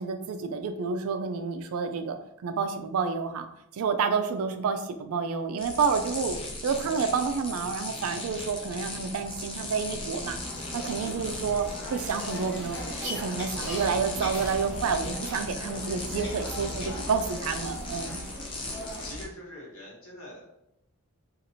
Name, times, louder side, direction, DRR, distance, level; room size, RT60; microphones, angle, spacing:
voice 1, 0.0-3.5 3.7-6.3 6.6-10.4 10.7-18.3, right 5 dB, 70° right, 8 dB, 0.3 m, -29 dB
sound 1, 5.6-19.3, left 2 dB, 25° left, 0.4 m, -37 dB
sound 2, 10.4-19.1, left 1 dB, 50° left, 0.9 m, -41 dB
voice 2, 18.4-18.7 19.0-20.4, left 1 dB, 65° left, -5 dB, 1.2 m, -44 dB
2.7 x 2.4 x 2.9 m, 0.82 s
head